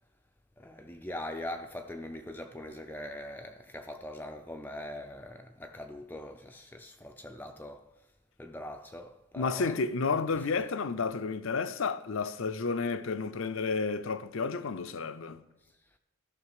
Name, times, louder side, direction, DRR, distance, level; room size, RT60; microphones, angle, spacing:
voice 1, 0.6-8.1 8.4-9.8 10.3-10.5 15.6-16.0, left 1 dB, 10° left, 0.4 m, -42 dB
voice 2, 9.4-15.4, left 4 dB, 65° left, 0.5 m, -31 dB
13.0 x 5.9 x 4.8 m
head